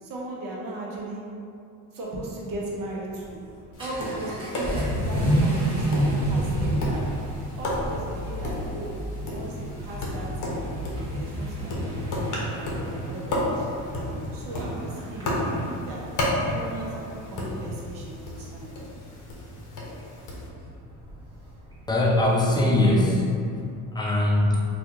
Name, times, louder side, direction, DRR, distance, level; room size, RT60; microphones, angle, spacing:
voice 1, 0.0-1.3 1.9-3.4 3.8-7.1 7.6-10.7 11.1-16.1 16.5-18.7, right 2 dB, 55° right, -4 dB, 0.9 m, -37 dB
Vehicle / Accelerating revving vroom, 3.3-23.0, right 1 dB, 10° right, 1.2 m, -31 dB
Tap, 3.7-20.5, left 1 dB, 50° left, 0.9 m, -33 dB
voice 2, 21.9-23.3 23.9-24.6, left 1 dB, 10° left, -3 dB, 0.5 m, -21 dB
2.8 x 2.5 x 3.5 m, 2.6 s
cardioid pair, 100°, 40 cm